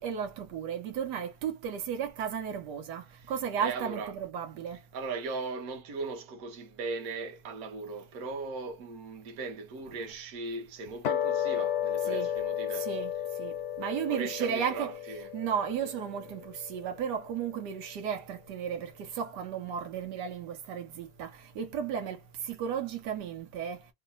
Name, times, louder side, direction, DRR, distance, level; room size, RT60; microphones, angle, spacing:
voice 1, 0.0-4.8 12.1-12.3 12.7-13.1 13.4-14.9 15.3-23.8, right 8 dB, 90° right, 1.4 m, -34 dB
voice 2, 3.6-4.1 4.9-12.9 14.1-15.3, right 3 dB, 65° right, 1.3 m, -38 dB
sound 1, 11.0-17.6, left 10 dB, 65° left, 0.7 m, -34 dB
3.2 x 2.2 x 3.9 m
omnidirectional pair, 1.7 m